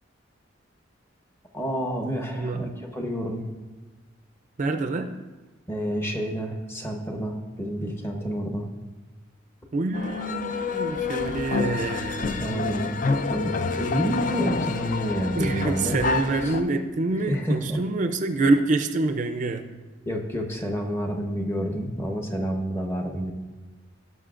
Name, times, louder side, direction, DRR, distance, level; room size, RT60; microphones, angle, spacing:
voice 1, 1.5-3.4 5.7-8.6 11.7-11.8 12.2-16.0 16.4-16.5 17.1-17.8 20.1-23.3, equal, 15° left, 2 dB, 0.9 m, -29 dB
voice 2, 4.6-5.1 9.7-12.3 15.3-19.7, right 3 dB, 40° right, 7 dB, 0.4 m, -26 dB
sound 1, 9.9-16.6, left 4 dB, 45° left, 0.5 m, -28 dB
17.5 x 5.8 x 2.5 m, 1.2 s
head